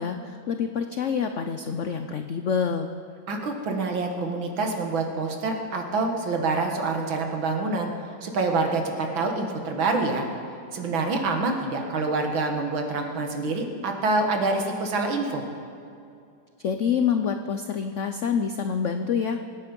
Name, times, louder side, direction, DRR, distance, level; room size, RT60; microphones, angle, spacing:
voice 1, 0.0-2.9 16.6-19.4, left 7 dB, 85° left, 7 dB, 0.6 m, -27 dB
voice 2, 3.3-7.9 8.2-10.3 10.7-15.4, right 3 dB, 85° right, 3 dB, 2.3 m, -26 dB
25.0 x 9.6 x 5.3 m, 2.5 s
omnidirectional pair, 2.1 m